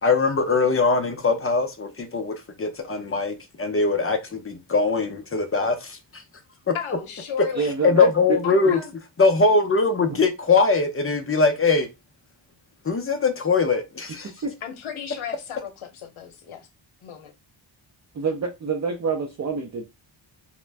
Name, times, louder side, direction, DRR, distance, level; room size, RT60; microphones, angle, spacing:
voice 1, 0.0-6.2 6.7-6.8 7.8-8.8 9.2-11.9 12.8-14.3, left 4 dB, 30° left, 0.4 m, -21 dB
voice 2, 6.7-7.7 8.4-8.9 14.6-16.7 17.0-17.3, left 8 dB, 75° left, 0.7 m, -34 dB
voice 3, 7.5-8.4 8.6-8.8 10.1-10.2 14.4-14.5 18.1-19.8, right 5 dB, 35° right, 0.4 m, -27 dB
2.5 x 2.1 x 3.2 m
wide cardioid pair, 165°, 48 cm